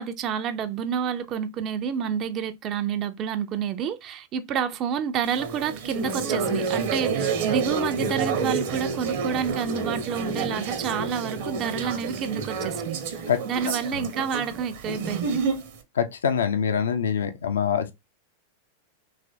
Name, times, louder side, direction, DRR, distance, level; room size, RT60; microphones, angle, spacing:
voice 1, 0.0-13.0 13.4-15.4, right 7 dB, 35° right, 0.5 m, -29 dB
sound 1, 5.2-15.8, right 5 dB, 55° right, 0.9 m, -29 dB
voice 2, 13.7-14.0 16.0-17.9, left 7 dB, 65° left, 0.5 m, -25 dB
3.2 x 3.2 x 2.6 m
figure-of-eight pair, 90°, 0 cm